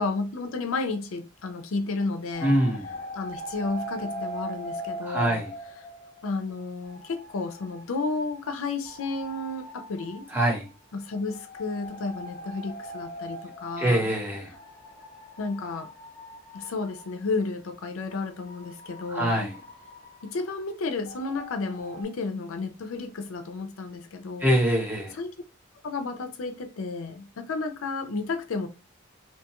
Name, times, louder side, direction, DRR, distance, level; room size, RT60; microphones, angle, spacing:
voice 1, 0.0-2.6 3.1-5.4 6.2-10.3 10.9-14.1 15.4-15.9 16.5-19.5 20.2-24.6 25.1-25.3 25.8-28.7, left 3 dB, 80° left, 0.4 m, -32 dB
sound 1, 2.3-6.4 6.8-17.5 18.1-22.0, equal, 40° left, 0.7 m, -41 dB
voice 2, 2.4-2.9 5.0-5.5 10.3-10.7 13.8-14.5 19.1-19.6 24.4-25.2, right 1 dB, 10° right, 0.8 m, -24 dB
2.7 x 2.3 x 2.9 m
head